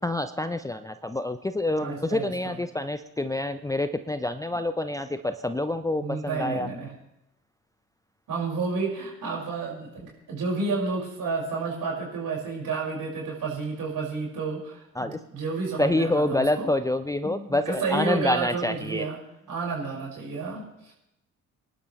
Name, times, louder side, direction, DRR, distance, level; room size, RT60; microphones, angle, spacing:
voice 1, 0.0-6.7 15.0-15.2 15.8-19.0, left 1 dB, 10° left, 9 dB, 0.7 m, -27 dB
voice 2, 1.7-2.5 6.0-6.9 8.3-16.7 17.2-19.2 19.5-20.9, right 4 dB, 55° right, -2 dB, 5.8 m, -31 dB
25.5 x 11.5 x 3.3 m, 0.85 s
figure-of-eight pair, 45°, 39 cm